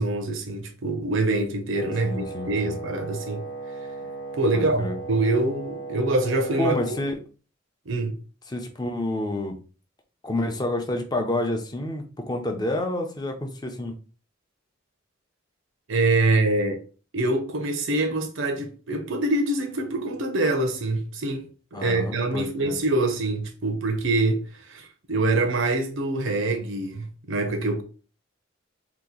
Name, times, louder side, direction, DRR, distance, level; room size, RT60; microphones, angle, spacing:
voice 1, 0.0-3.4 4.3-6.8 7.9-8.2 15.9-16.8 17.1-27.8, right 2 dB, 80° right, 0.7 m, -25 dB
Wind instrument woodwind instrument, 1.7-7.1, right 3 dB, 85° left, 0.6 m, -37 dB
voice 2, 2.0-2.8 4.5-5.0 6.6-7.2 8.5-9.6 10.2-14.0 21.7-22.8, left 1 dB, 20° left, 0.5 m, -29 dB
2.9 x 2.4 x 3.7 m
head